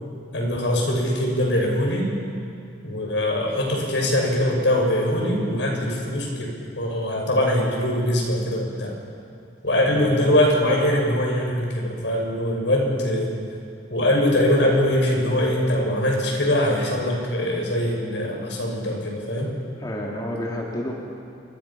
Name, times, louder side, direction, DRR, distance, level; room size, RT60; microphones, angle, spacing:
voice 1, 0.3-2.1 2.8-6.5 6.7-8.9 9.6-13.3 13.9-19.5, left 1 dB, 80° left, 0 dB, 6.6 m, -22 dB
voice 2, 19.8-20.9, left 1 dB, 25° left, -2 dB, 2.7 m, -30 dB
28.5 x 25.0 x 5.9 m, 2.4 s
head